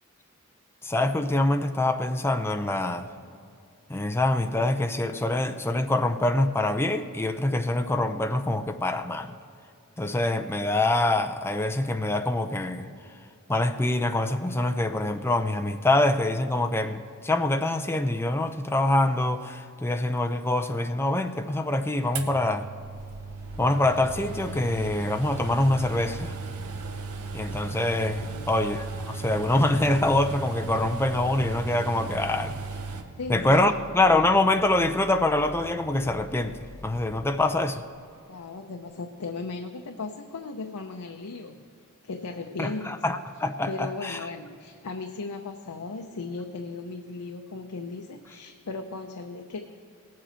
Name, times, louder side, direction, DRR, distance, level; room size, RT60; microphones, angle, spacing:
voice 1, 0.8-3.1 3.9-9.3 10.0-12.9 13.5-22.7 23.6-26.3 27.3-32.6 33.3-36.6 36.8-37.8 42.6-44.2, left 2 dB, 10° left, 7 dB, 0.5 m, -25 dB
sound 1, 22.1-33.0, right 4 dB, 75° right, 0.9 m, -36 dB
sound 2, 22.7-38.4 38.8-38.9, left 1 dB, 10° right, 1.2 m, -46 dB
voice 2, 28.2-28.5 33.2-33.8 38.3-41.7 42.0-42.9 43.7-49.6, left 3 dB, 80° left, 4 dB, 0.6 m, -36 dB
18.5 x 7.6 x 4.4 m, 2.4 s
head